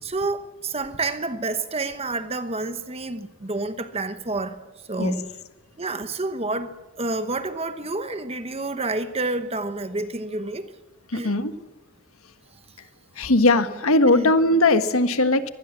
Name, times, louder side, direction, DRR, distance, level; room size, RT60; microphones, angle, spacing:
voice 1, 0.0-4.6 4.9-5.3 5.8-10.7 11.1-11.4 14.1-14.3, right 2 dB, 25° right, 1.1 m, -29 dB
voice 2, 11.1-11.5 13.2-15.5, left 2 dB, 70° left, 1.6 m, -19 dB
24.0 x 19.5 x 7.3 m
head